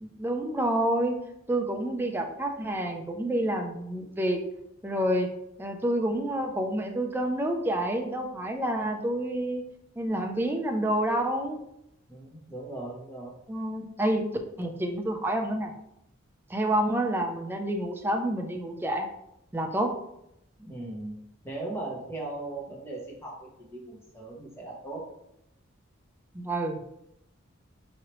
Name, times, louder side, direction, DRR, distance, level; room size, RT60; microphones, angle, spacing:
voice 1, 0.0-1.2 1.5-4.4 4.8-5.3 5.6-9.6 10.0-11.6 13.5-14.2 14.6-15.7 16.5-19.1 19.5-19.9 26.3-26.8, right 1 dB, 10° right, 3 dB, 0.5 m, -28 dB
voice 2, 12.1-13.3 20.6-25.0, right 2 dB, 10° left, -2 dB, 1.0 m, -38 dB
4.8 x 3.1 x 3.0 m, 0.80 s
head